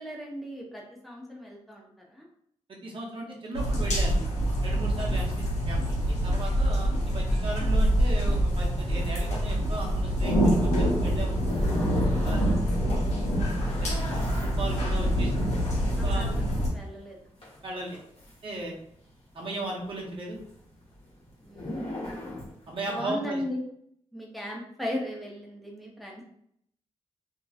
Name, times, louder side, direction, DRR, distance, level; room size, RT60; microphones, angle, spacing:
voice 1, 0.0-2.3 14.6-15.1 16.0-17.2 21.4-21.8 22.8-23.6 24.1-26.2, left 1 dB, ahead, -2 dB, 0.7 m, -37 dB
voice 2, 2.8-4.2 4.6-6.0 6.2-11.3 12.2-12.5 13.8-13.9 14.4-15.3 16.0-16.3 17.6-18.0 18.4-18.7 19.3-20.4 22.7-23.4, right 2 dB, 50° right, -2 dB, 0.7 m, -36 dB
sound 1, 3.5-16.7, equal, 85° left, 0.8 m, -25 dB
sound 2, 11.5-12.6 12.9-19.1 19.3-23.0, left 1 dB, 60° left, 1.1 m, -40 dB
2.8 x 2.6 x 2.4 m, 0.70 s
wide cardioid pair, 120°, 11 cm